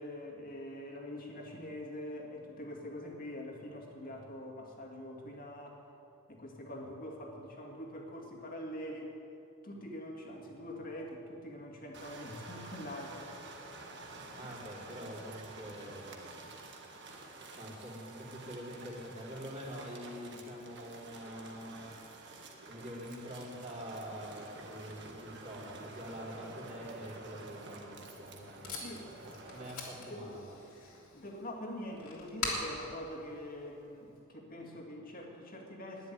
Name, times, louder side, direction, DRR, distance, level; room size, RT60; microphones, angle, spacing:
voice 1, 0.0-5.8 6.3-9.1 9.6-13.3 28.8-29.1 30.0-30.5 31.1-36.1, left 1 dB, 40° left, -1 dB, 2.3 m, -44 dB
sound 1, 11.9-29.7, right 2 dB, 50° right, 1.7 m, -49 dB
voice 2, 14.3-16.5 17.6-21.9 22.7-29.1 29.5-30.5, equal, 35° right, -5 dB, 3.7 m, -45 dB
Packing tape duct tape, 27.7-34.2, left 3 dB, 75° left, 3.1 m, -44 dB
11.5 x 10.5 x 9.5 m, 2.8 s
head